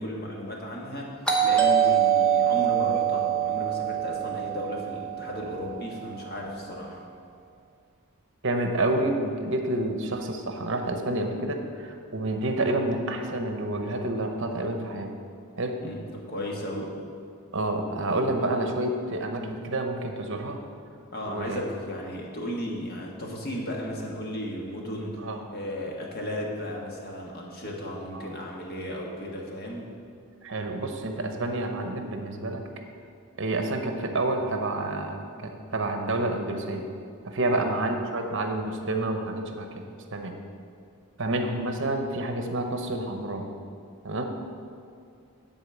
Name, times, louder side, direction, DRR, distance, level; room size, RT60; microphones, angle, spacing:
voice 1, 0.0-7.0 15.8-17.0 21.1-29.9 37.4-37.7, equal, 45° left, -1 dB, 1.4 m, -35 dB
Doorbell, 1.3-5.9, right 9 dB, 5° left, 0.9 m, -24 dB
voice 2, 8.4-15.1 15.6-15.8 17.5-20.6 21.3-21.6 25.2-25.4 28.1-28.3 30.4-32.6 33.4-36.8 37.2-39.8 40.1-40.3 41.2-43.4 44.0-44.3, right 2 dB, 55° right, 4 dB, 0.9 m, -29 dB
10.0 x 4.2 x 7.4 m, 2.4 s
head